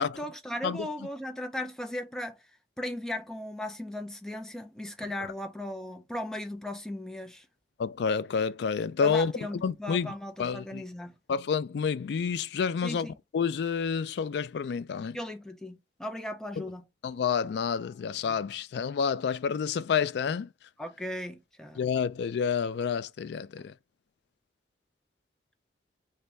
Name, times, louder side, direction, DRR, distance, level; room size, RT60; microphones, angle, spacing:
voice 1, 0.0-2.4 2.8-7.5 9.0-11.2 12.8-13.1 15.1-16.9 20.8-21.8 23.6-23.7, left 1 dB, 5° left, 0.4 m, -37 dB
voice 2, 7.8-10.1 10.4-10.8 11.3-13.1 13.3-15.2 16.6-16.7 17.0-20.5 21.8-23.7, left 6 dB, 70° left, 0.3 m, -29 dB
4.1 x 2.6 x 3.3 m
head